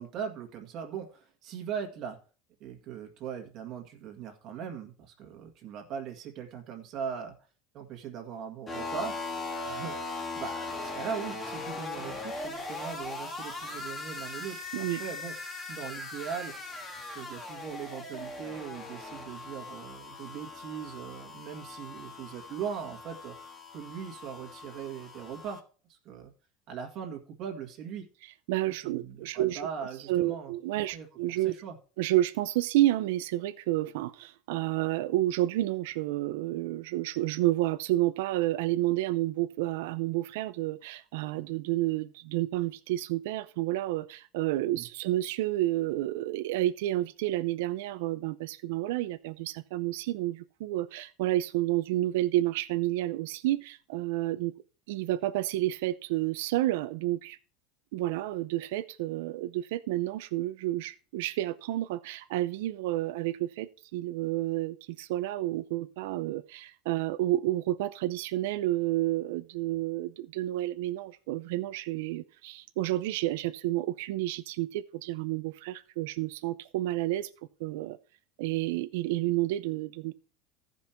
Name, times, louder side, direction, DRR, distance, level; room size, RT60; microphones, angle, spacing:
voice 1, 0.0-2.2 2.6-7.4 7.7-9.2 9.6-15.3 15.7-16.5 17.0-23.4 23.7-25.6 25.9-26.3 26.7-28.1 28.8-30.5 30.9-31.1 31.4-31.8 44.7-44.9, right 7 dB, 45° right, 1.9 m, -40 dB
sound 1, 8.7-25.6, left 3 dB, 20° left, 1.6 m, -40 dB
voice 2, 28.5-29.7 30.1-31.5 32.0-54.5 54.9-57.4 57.9-77.3 77.6-78.0 78.4-80.1, right 15 dB, 80° right, 0.6 m, -30 dB
14.0 x 5.4 x 4.4 m
supercardioid pair, 135°, 0 cm